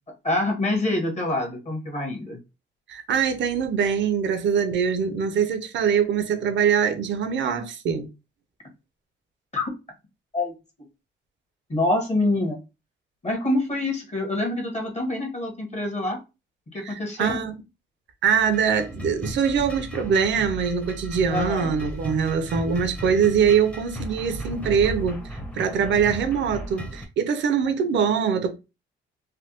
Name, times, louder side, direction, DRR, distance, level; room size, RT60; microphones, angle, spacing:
voice 1, 0.2-2.4 9.5-9.7 10.3-10.5 11.7-12.6 13.2-16.2 16.7-17.4 21.3-21.9, left 2 dB, 35° left, 1.3 m, -26 dB
voice 2, 2.9-8.1 16.9-17.6 18.2-28.5, right 7 dB, 65° right, 0.7 m, -23 dB
sound 1, 18.4-27.1, equal, 5° left, 0.8 m, -35 dB
3.3 x 2.2 x 2.8 m
cardioid pair, 90°, 20 cm